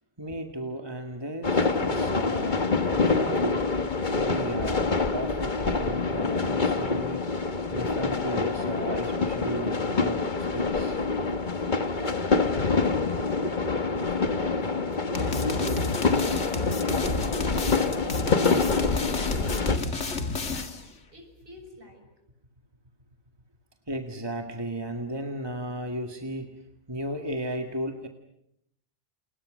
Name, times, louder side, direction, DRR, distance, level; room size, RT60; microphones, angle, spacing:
voice 1, 0.2-3.7 4.2-7.3 7.7-11.0 23.9-26.6 26.9-28.1, right 1 dB, 20° right, 4 dB, 2.0 m, -35 dB
sound 1, 1.4-19.8, left 4 dB, 40° left, 1.5 m, -26 dB
voice 2, 11.7-18.8 19.1-20.8 21.1-22.1, equal, 50° right, 5 dB, 6.6 m, -48 dB
sound 2, 15.1-20.9, left 3 dB, 80° left, 2.4 m, -31 dB
30.0 x 29.5 x 6.4 m, 0.78 s
omnidirectional pair, 1.2 m